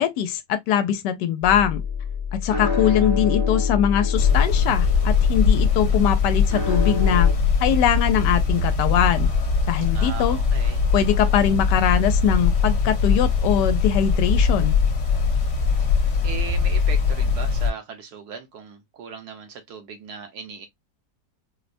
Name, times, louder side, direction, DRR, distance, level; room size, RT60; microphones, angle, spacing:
voice 1, 0.0-1.8 2.3-7.3 7.6-9.3 9.7-10.4 10.9-14.7, left 9 dB, 85° left, 1.2 m, -22 dB
sound 1, 1.4-7.3, left 6 dB, 15° right, 0.6 m, -26 dB
sound 2, 4.2-17.7, left 5 dB, 50° left, 1.2 m, -21 dB
voice 2, 9.9-10.8 15.8-15.9 16.2-20.7, right 5 dB, 70° right, 1.4 m, -38 dB
4.6 x 2.1 x 2.4 m
omnidirectional pair, 1.8 m